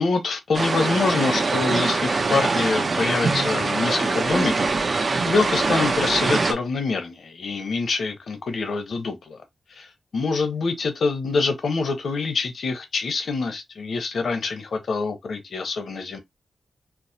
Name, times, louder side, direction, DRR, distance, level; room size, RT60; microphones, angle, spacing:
voice 1, 0.0-4.7 5.3-9.4 9.7-16.2, left 4 dB, 80° left, 0.8 m, -25 dB
sound 1, 0.5-6.5, right 3 dB, 55° right, 0.6 m, -23 dB
4.6 x 2.0 x 2.7 m
wide cardioid pair, 80°, 0 cm